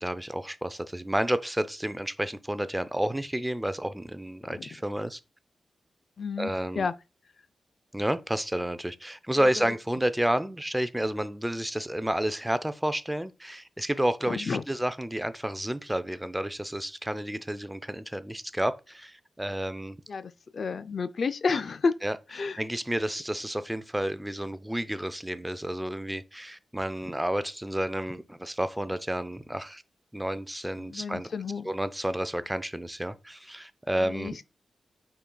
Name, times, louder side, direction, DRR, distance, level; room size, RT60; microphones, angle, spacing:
voice 1, 0.0-5.2 6.4-6.9 7.9-20.0 22.0-22.2 22.6-29.8 30.1-31.3 31.6-34.4, right 1 dB, 10° right, 0.4 m, -30 dB
voice 2, 6.2-6.9 9.4-9.5 14.3-14.6 20.1-22.0 22.3-22.6 30.8-31.7 34.0-34.5, left 4 dB, 60° left, 0.3 m, -31 dB
5.6 x 3.8 x 2.3 m
cardioid pair, 65°, 0 cm